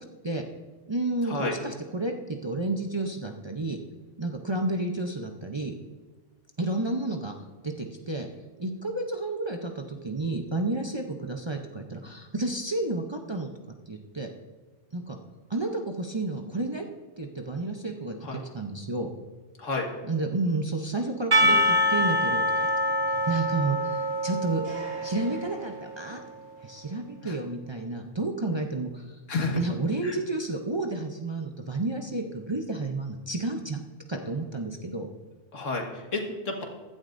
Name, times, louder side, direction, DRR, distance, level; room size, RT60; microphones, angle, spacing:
voice 1, 0.9-3.8 4.2-5.7 6.6-7.3 7.6-8.3 8.6-13.5 13.9-14.3 14.9-15.2 15.5-16.8 17.2-19.1 20.0-22.4 23.3-24.6 25.0-26.2 26.6-29.2 29.5-33.8 34.1-35.1, right 2 dB, 30° right, 2 dB, 0.6 m, -31 dB
Percussion / Church bell, 21.3-26.3, equal, 50° right, 1.5 m, -25 dB
voice 2, 29.3-29.6 35.5-35.8 36.1-36.6, left 3 dB, 85° left, 1 dB, 2.0 m, -29 dB
15.5 x 11.0 x 2.6 m, 1.3 s
omnidirectional pair, 1.3 m